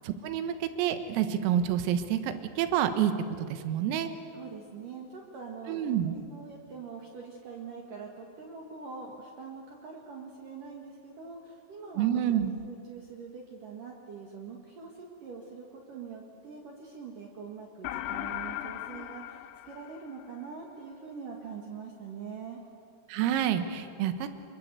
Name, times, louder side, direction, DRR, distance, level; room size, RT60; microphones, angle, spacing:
voice 1, 0.1-3.1 3.4-4.1 5.7-6.2 12.0-12.5 23.1-24.3, right 10 dB, 85° right, 9 dB, 4.1 m, -28 dB
voice 2, 4.3-22.6, right 5 dB, 55° right, 0 dB, 2.8 m, -44 dB
sound 1, 17.8-20.5, left 13 dB, 80° left, 3.2 m, -38 dB
27.5 x 23.0 x 8.3 m, 2.4 s
omnidirectional pair, 5.9 m